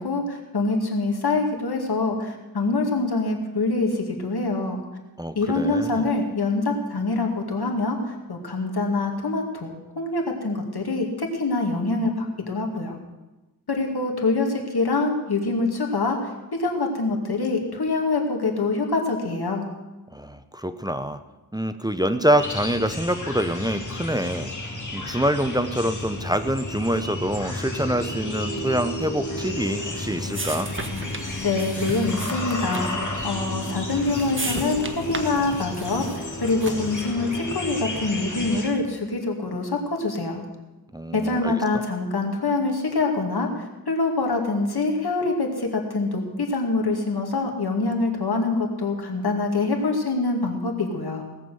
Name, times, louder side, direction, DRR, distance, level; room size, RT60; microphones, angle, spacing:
voice 1, 0.0-4.8 5.4-13.0 13.7-16.3 16.6-19.6 31.4-40.4 41.1-51.2, left 3 dB, 80° left, 2 dB, 2.3 m, -25 dB
voice 2, 5.2-6.1 20.1-21.2 21.5-24.5 24.9-30.7 40.9-41.5, right 1 dB, 10° right, 9 dB, 0.7 m, -25 dB
sound 1, 22.4-38.7, left 1 dB, 50° left, 2.7 m, -32 dB
sound 2, 29.6-37.0, right 2 dB, 30° right, 1.4 m, -36 dB
17.5 x 7.2 x 7.8 m, 1.1 s
wide cardioid pair, 80°, 37 cm